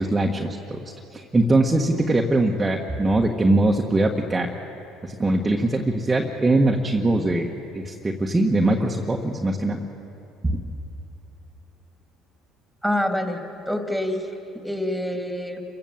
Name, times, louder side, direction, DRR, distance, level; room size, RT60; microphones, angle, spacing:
voice 1, 0.0-4.5 5.0-9.8 10.4-10.6, right 2 dB, 20° right, 0 dB, 1.5 m, -22 dB
voice 2, 12.8-14.3 14.6-15.6, left 1 dB, ahead, 4 dB, 2.9 m, -26 dB
28.5 x 16.0 x 7.4 m, 2.8 s
supercardioid pair, 85°, 0 cm